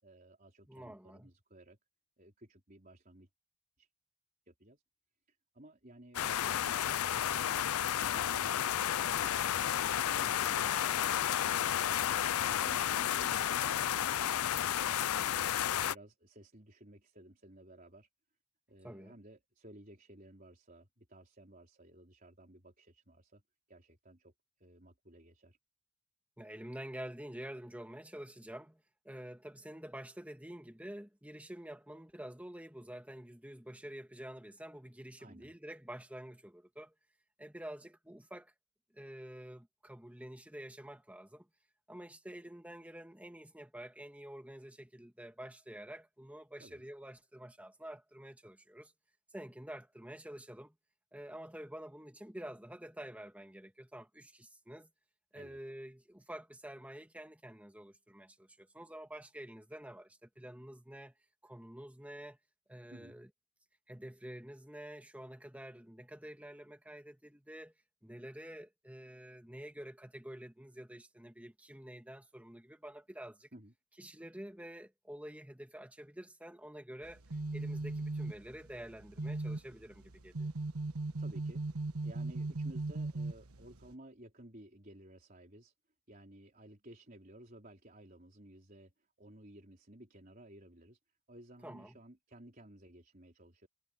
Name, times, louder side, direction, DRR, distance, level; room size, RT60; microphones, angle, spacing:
voice 1, 0.0-1.8 2.2-3.3 3.8-3.9 4.5-4.8 5.3-11.9 12.4-15.3 15.9-18.1 18.7-23.4 23.7-24.3 24.6-25.6 35.2-35.5 46.6-46.8 55.3-55.6 62.9-63.2 73.5-73.7 81.2-85.7 86.1-91.0 91.3-93.7, right 1 dB, 40° right, 4.3 m, -56 dB
voice 2, 0.7-1.3 18.8-19.1 26.4-36.9 37.4-38.5 38.9-41.5 41.9-48.9 49.3-50.7 51.1-54.9 55.3-61.1 61.4-62.4 62.7-63.3 63.9-67.7 68.0-73.5 74.0-77.2 77.5-80.5 91.6-92.0, right 1 dB, 5° right, 1.8 m, -48 dB
sound 1, 6.1-15.9, left 10 dB, 85° left, 0.5 m, -32 dB
sound 2, 77.0-83.9, right 2 dB, 90° right, 1.4 m, -39 dB
head